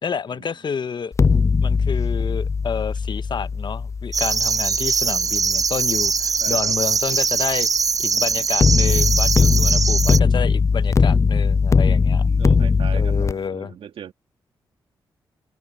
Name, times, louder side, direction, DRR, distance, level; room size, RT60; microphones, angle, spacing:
voice 1, 0.0-1.1 1.6-7.7 8.0-12.3 12.9-13.7, left 6 dB, 55° left, 1.0 m, -29 dB
sound 1, 1.1-6.2 8.6-13.3, left 5 dB, 35° left, 0.4 m, -19 dB
sound 2, 4.1-10.2, right 5 dB, 40° right, 0.4 m, -21 dB
voice 2, 6.4-6.8 9.4-10.0 12.1-14.1, right 8 dB, 75° right, 2.4 m, -39 dB
supercardioid pair, 50°, 9 cm